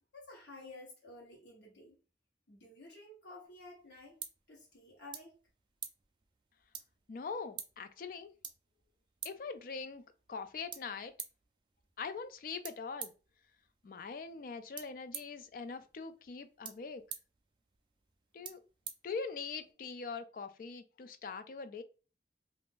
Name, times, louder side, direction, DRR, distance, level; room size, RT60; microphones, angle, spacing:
voice 1, 0.1-2.0 2.5-4.2 4.5-5.4, left 2 dB, 80° left, 1.0 m, -52 dB
sound 1, 3.4-19.7, right 8 dB, 25° right, 0.3 m, -51 dB
voice 2, 7.1-8.3 9.2-10.0 10.3-11.1 12.0-13.1 13.8-17.0 18.3-18.6 19.0-21.8, left 5 dB, 50° left, 0.3 m, -42 dB
2.5 x 2.4 x 3.5 m
head